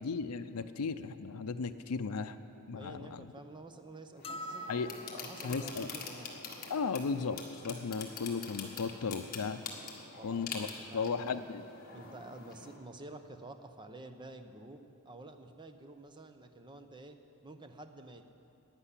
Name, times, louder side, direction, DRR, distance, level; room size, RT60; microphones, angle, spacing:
voice 1, 0.0-2.4 2.7-3.3 4.7-4.9 5.4-5.9 6.7-7.4 7.6-9.6 10.2-10.7 10.9-11.7, left 5 dB, 80° left, 9 dB, 0.5 m, -35 dB
voice 2, 2.7-4.7 5.1-6.4 10.0-11.4 11.9-18.2, right 2 dB, 20° right, 7 dB, 0.7 m, -50 dB
sound 1, 4.2-12.8, left 5 dB, 45° left, 1.5 m, -45 dB
sound 2, 4.2-5.6, equal, 25° left, 0.4 m, -44 dB
11.5 x 9.7 x 8.3 m, 2.7 s
head